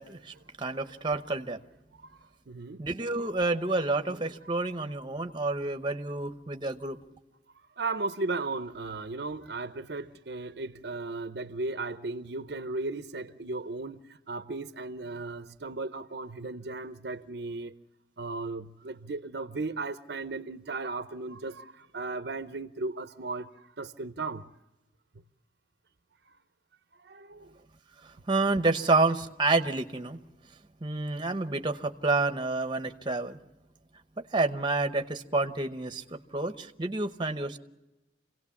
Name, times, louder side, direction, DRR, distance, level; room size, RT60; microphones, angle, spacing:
voice 1, 0.0-1.6 2.8-7.0 28.0-30.2 30.8-33.4 34.3-36.0 36.3-37.6, right 3 dB, 25° right, 0.9 m, -29 dB
voice 2, 2.5-2.8 7.8-17.7 18.2-23.5 23.8-24.5 27.0-27.5, right 3 dB, 60° right, 0.7 m, -36 dB
26.5 x 17.0 x 7.2 m
head